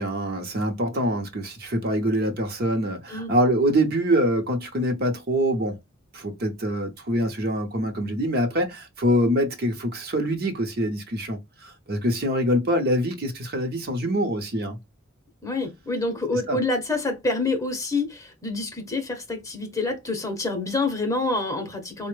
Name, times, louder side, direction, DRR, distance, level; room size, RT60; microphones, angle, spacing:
voice 1, 0.0-5.8 6.1-14.8 16.5-16.6, equal, 50° right, 0.8 m, -25 dB
voice 2, 15.4-22.1, left 2 dB, 15° left, 0.8 m, -27 dB
4.2 x 2.1 x 3.1 m
head